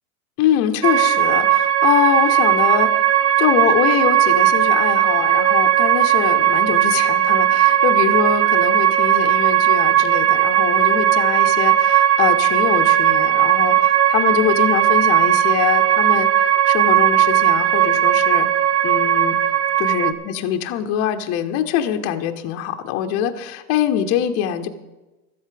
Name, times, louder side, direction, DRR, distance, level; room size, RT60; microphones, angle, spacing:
voice 1, 0.4-3.0 3.4-16.3 16.7-18.5 18.8-19.4 19.8-24.7, left 9 dB, 30° left, 5 dB, 0.7 m, -23 dB
sound 1, 0.8-20.1, right 11 dB, 75° right, 1.5 m, -17 dB
13.0 x 8.2 x 7.5 m, 1.1 s
supercardioid pair, 160°, 48 cm